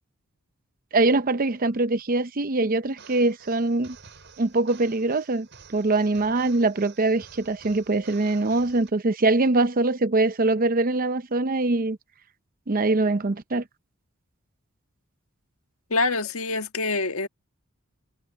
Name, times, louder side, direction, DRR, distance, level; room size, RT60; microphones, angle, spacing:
voice 1, 0.9-4.0 4.4-12.0 12.7-13.6, right 2 dB, 45° right, 0.7 m, -23 dB
sound 1, 2.9-8.9, right 5 dB, 60° right, 7.2 m, -50 dB
voice 2, 15.9-17.3, left 3 dB, 80° left, 1.6 m, -25 dB
head